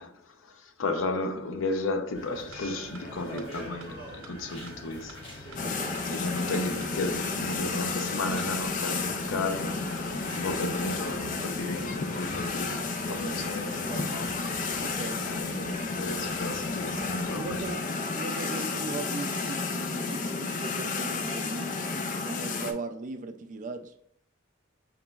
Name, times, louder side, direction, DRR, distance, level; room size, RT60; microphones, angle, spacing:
voice 1, 0.0-5.5 6.0-14.3 15.2-15.5 15.7-17.8, left 2 dB, 90° left, 0.5 m, -34 dB
sound 1, 2.1-17.7, equal, 70° left, 1.2 m, -44 dB
sound 2, 2.1-2.2 2.5-2.6 2.9-3.0 3.4-3.5 3.8-3.9 4.2-4.3 4.7-4.8 5.1-5.2 5.5-5.6 5.9-6.0 6.4-6.5 6.8-6.9 7.2-7.3, right 6 dB, 85° right, 0.6 m, -49 dB
sound 3, 5.6-22.7, left 4 dB, 40° left, 0.4 m, -32 dB
voice 2, 5.6-6.1 13.1-14.1 14.8-15.8 17.3-23.9, right 3 dB, 40° right, 0.3 m, -39 dB
5.1 x 3.0 x 2.2 m
head